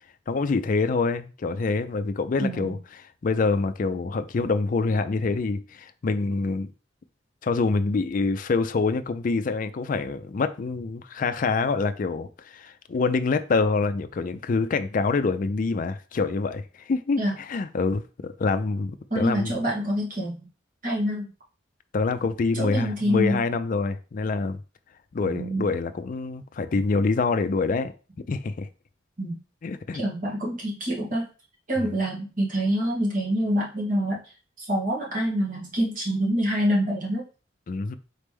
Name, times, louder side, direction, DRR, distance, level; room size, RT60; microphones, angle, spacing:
voice 1, 0.3-2.8 3.2-6.7 7.4-17.2 17.5-19.6 21.9-24.6 25.1-27.9 28.3-28.7 29.6-30.0 31.8-31.9 37.7-37.9, left 4 dB, 45° left, 0.4 m, -26 dB
voice 2, 2.4-2.8 17.2-17.3 19.1-20.5 20.8-21.3 22.5-23.4 25.2-25.7 29.2-29.4 29.9-31.3 31.7-34.2 34.6-37.2, equal, 45° right, 1.8 m, -26 dB
4.1 x 3.2 x 3.4 m
head